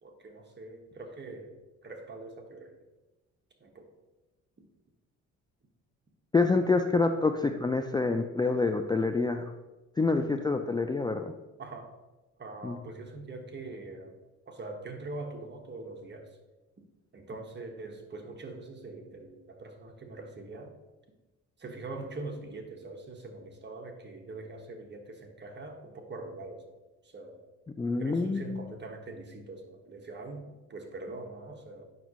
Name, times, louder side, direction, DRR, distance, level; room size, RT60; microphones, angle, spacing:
voice 1, 0.0-1.6 1.8-2.8 3.6-3.9 11.6-11.9 12.4-14.1 14.5-16.4 17.1-20.7 21.6-26.6 27.0-27.4 28.0-31.8, right 2 dB, 35° right, 2 dB, 1.4 m, -43 dB
voice 2, 6.3-9.5 10.0-11.3 12.6-12.8 27.8-28.6, left 3 dB, 15° left, 7 dB, 0.4 m, -27 dB
9.1 x 6.0 x 3.0 m, 1.1 s
cardioid pair, 90°, 30 cm